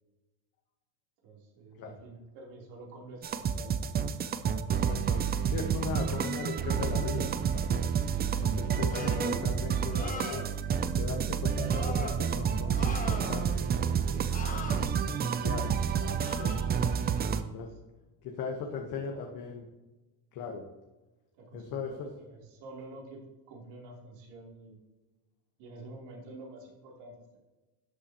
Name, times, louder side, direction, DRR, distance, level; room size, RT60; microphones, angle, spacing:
voice 1, 1.2-3.7 17.2-17.8 18.4-18.5 18.8-19.3 21.3-23.2 23.5-24.8 25.6-27.4, right 2 dB, 75° right, -2 dB, 3.4 m, -49 dB
sound 1, 3.2-17.4, right 7 dB, 25° right, 0.4 m, -29 dB
voice 2, 4.7-7.9 8.4-10.5 10.9-14.8 15.1-15.7 16.0-16.5 17.5-17.7 18.2-19.6 20.3-20.6 21.5-22.1, left 5 dB, 50° left, 2 dB, 1.3 m, -39 dB
sound 2, 8.9-9.4 9.9-10.5 11.7-12.2 12.7-13.6 14.3-14.8 16.2-16.7, left 4 dB, 20° left, 1.3 m, -40 dB
12.5 x 8.1 x 2.9 m, 1.1 s
cardioid pair, 140°, 40 cm